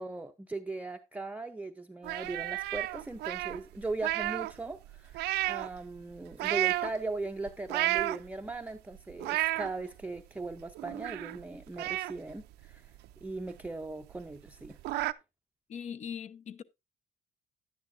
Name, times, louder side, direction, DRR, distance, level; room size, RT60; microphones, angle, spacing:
voice 1, 0.0-12.9 13.2-14.8, right 3 dB, 10° right, 0.6 m, -39 dB
sound 1, 2.0-4.6 4.9-5.8 6.3-6.9 7.5-8.5 8.9-9.7 10.2-10.3 10.5-11.4 11.8-13.3 13.6-13.7 14.1-14.2 14.5-15.1, right 18 dB, 80° right, 0.5 m, -32 dB
voice 2, 15.7-16.6, left 8 dB, 45° left, 0.7 m, -40 dB
11.0 x 9.8 x 2.6 m
cardioid pair, 110°, 17 cm